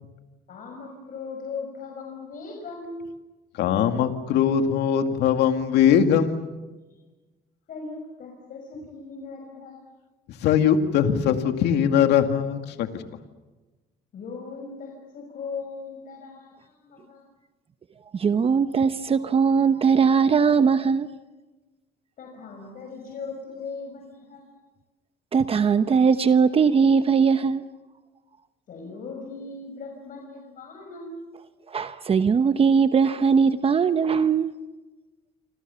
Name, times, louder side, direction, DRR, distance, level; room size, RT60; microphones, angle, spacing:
voice 1, 0.5-3.1 6.9-7.0 7.7-9.9 14.1-17.3 22.2-24.6 28.7-31.3, left 4 dB, 55° left, 1 dB, 5.7 m, -38 dB
voice 2, 3.5-6.5 10.3-13.0, left 8 dB, 80° left, 7 dB, 2.3 m, -21 dB
voice 3, 18.1-21.1 25.3-27.6 31.7-34.5, right 6 dB, 35° right, 11 dB, 1.0 m, -20 dB
28.5 x 26.0 x 7.1 m, 1.2 s
cardioid pair, 110°, 17 cm